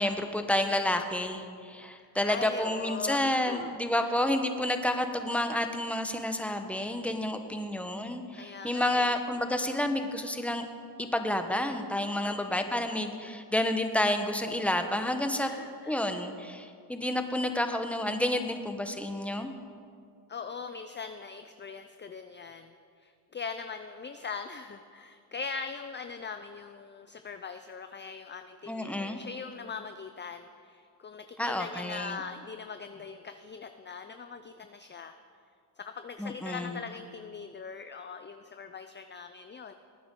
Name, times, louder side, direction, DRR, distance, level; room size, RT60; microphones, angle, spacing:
voice 1, 0.0-10.7 11.0-15.5 15.9-19.5 28.7-29.2 31.4-32.2 36.2-36.8, left 1 dB, 5° left, 6 dB, 1.1 m, -30 dB
voice 2, 2.3-4.1 8.3-9.2 12.2-12.6 15.4-16.3 20.3-35.1 35.8-39.7, left 5 dB, 25° left, 8 dB, 0.6 m, -41 dB
19.5 x 9.3 x 3.8 m, 2.3 s
cardioid pair, 75°, 44 cm